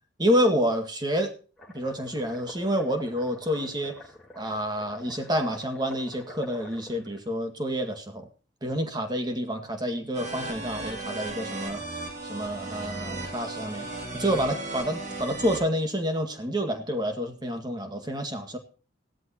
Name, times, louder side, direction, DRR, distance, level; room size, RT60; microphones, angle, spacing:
voice 1, 0.2-1.3 1.7-4.0 4.4-8.3 8.6-11.8 12.3-13.9 14.1-18.6, equal, 20° right, 5 dB, 1.9 m, -28 dB
sound 1, 1.6-7.2, left 1 dB, ahead, 3.6 m, -48 dB
sound 2, 10.1-15.6, right 2 dB, 40° right, 2.9 m, -36 dB
16.5 x 13.0 x 2.9 m, 0.36 s
head